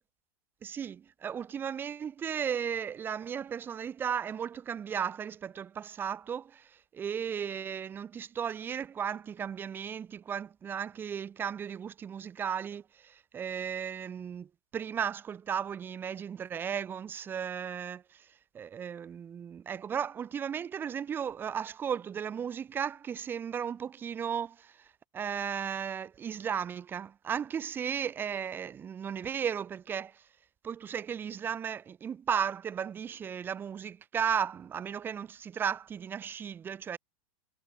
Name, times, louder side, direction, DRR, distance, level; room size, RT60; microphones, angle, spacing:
voice 1, 0.6-30.3 30.6-37.0, right 8 dB, 10° right, 0.8 m, -35 dB
supercardioid pair, 175°, 18 cm